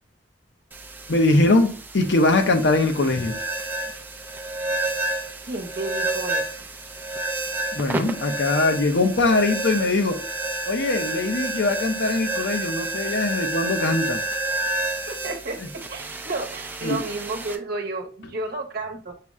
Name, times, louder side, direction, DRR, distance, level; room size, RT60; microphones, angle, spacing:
sound 1, 0.7-17.6, right 2 dB, 10° right, 0.4 m, -30 dB
voice 1, 1.1-3.4 7.7-10.2 10.7-14.2 15.6-15.7 16.8-17.0, left 2 dB, 65° left, 0.6 m, -21 dB
voice 2, 5.4-6.7 15.1-15.6 15.9-19.1, right 2 dB, 60° right, 0.9 m, -31 dB
5.7 x 2.1 x 3.5 m
head